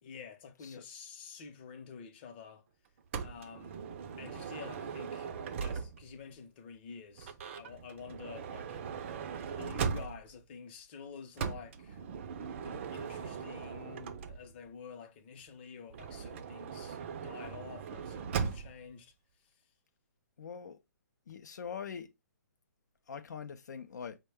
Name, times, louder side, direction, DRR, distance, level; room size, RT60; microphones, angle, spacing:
voice 1, 0.0-2.7 3.2-3.8 4.2-5.3 5.6-8.8 9.6-12.0 12.6-19.1, left 6 dB, 35° left, 0.7 m, -49 dB
Motor vehicle (road) / Sliding door, 3.1-6.2 7.2-10.4 11.4-14.7 15.9-18.9, right 6 dB, 45° right, 0.4 m, -39 dB
voice 2, 20.4-20.8 21.3-22.1 23.1-24.2, left 7 dB, 75° left, 0.4 m, -43 dB
4.4 x 2.2 x 3.3 m
hypercardioid pair, 155°, 10 cm